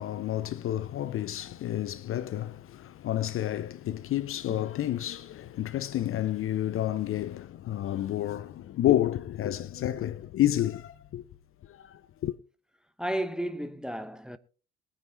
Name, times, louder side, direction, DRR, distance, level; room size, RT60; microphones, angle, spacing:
voice 1, 0.0-11.2 11.7-12.3, left 13 dB, 40° left, 0.7 m, -30 dB
voice 2, 13.0-14.4, right 1 dB, ahead, 0.9 m, -33 dB
22.0 x 9.9 x 2.8 m
figure-of-eight pair, 60°, 35 cm